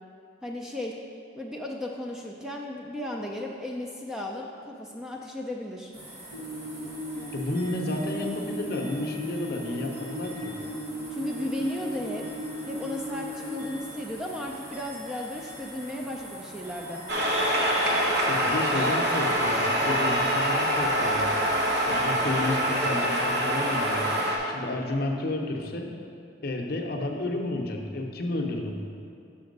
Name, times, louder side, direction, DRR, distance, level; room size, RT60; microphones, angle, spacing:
voice 1, 0.4-1.0 1.4-5.9 11.1-12.3 12.7-17.0, left 1 dB, 5° right, 0 dB, 0.3 m, -35 dB
sound 1, 5.9-24.3, right 1 dB, 35° right, 1.4 m, -44 dB
sound 2, 6.3-13.8, equal, 85° right, 0.9 m, -36 dB
voice 2, 7.3-10.5 18.3-21.3 21.9-24.1 24.4-25.9 26.4-28.7, left 2 dB, 50° left, 2 dB, 0.6 m, -31 dB
sound 3, 17.1-24.4, equal, 60° right, 1.0 m, -25 dB
5.7 x 5.2 x 5.2 m, 2.4 s
head